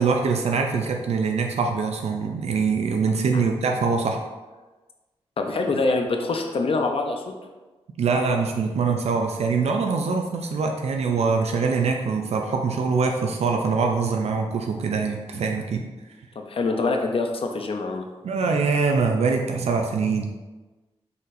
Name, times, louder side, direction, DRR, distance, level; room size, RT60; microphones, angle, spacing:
voice 1, 0.0-4.2 8.0-15.9 18.2-20.3, right 4 dB, 80° right, 3 dB, 0.4 m, -23 dB
voice 2, 5.4-7.3 16.4-18.1, left 3 dB, 60° left, 3 dB, 0.5 m, -25 dB
4.1 x 4.0 x 2.5 m, 1.2 s
cardioid pair, 70°, 11 cm